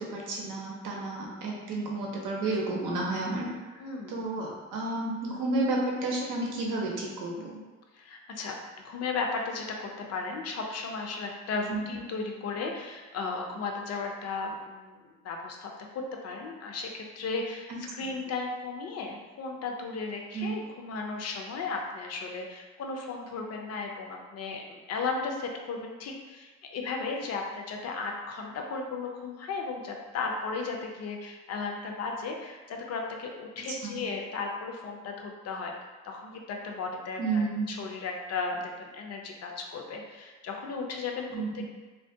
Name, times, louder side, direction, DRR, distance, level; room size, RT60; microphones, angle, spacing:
voice 1, 0.0-3.5 4.1-7.6 11.7-11.9 20.3-20.5 33.8-34.0 37.2-37.6 41.3-41.5, right 2 dB, 85° right, -2 dB, 0.7 m, -31 dB
voice 2, 3.8-4.3 7.9-8.6 8.8-35.7 36.0-41.7, left 4 dB, 55° left, 2 dB, 0.5 m, -35 dB
2.3 x 2.1 x 2.6 m, 1.2 s
cardioid pair, 90°, 30 cm